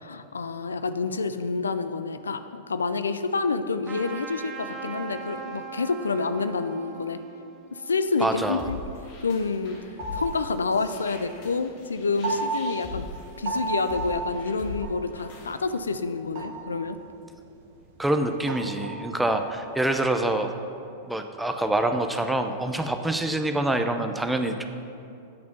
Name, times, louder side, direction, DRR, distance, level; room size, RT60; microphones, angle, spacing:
voice 1, 0.0-7.2 7.7-8.8 9.2-9.8 10.1-13.1 13.4-17.0, left 4 dB, 85° left, 11 dB, 0.3 m, -28 dB
Trumpet, 3.8-8.9, right 6 dB, 30° right, 0.9 m, -40 dB
voice 2, 8.2-8.7 18.0-20.5 21.1-24.6, right 1 dB, 5° right, 6 dB, 0.6 m, -26 dB
sound 1, 8.3-15.6, left 2 dB, 55° left, 1.9 m, -41 dB
sound 2, 10.0-11.6 12.0-16.0 16.3-17.1 17.4-17.6 17.9-18.0 18.2-20.3, right 3 dB, 55° right, 1.2 m, -34 dB
8.5 x 4.2 x 6.8 m, 2.6 s
hypercardioid pair, 100°, 0 cm